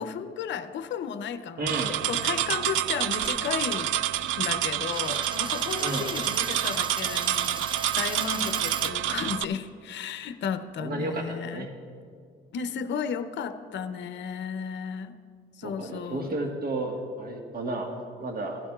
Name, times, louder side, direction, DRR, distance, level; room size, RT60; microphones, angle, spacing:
voice 1, 0.0-1.8 2.1-3.9 4.4-7.6 8.0-11.7 12.5-15.2 15.6-16.3, left 7 dB, 65° left, 10 dB, 0.6 m, -34 dB
voice 2, 1.6-2.0 5.8-6.1 10.8-11.7 15.6-18.6, right 2 dB, 50° right, 2 dB, 1.4 m, -32 dB
sound 1, 1.7-9.4, right 12 dB, 80° right, 0.4 m, -28 dB
Coin (dropping), 3.1-8.9, right 3 dB, 25° right, 0.6 m, -38 dB
16.5 x 12.5 x 2.3 m, 2.1 s
cardioid pair, 90°, 20 cm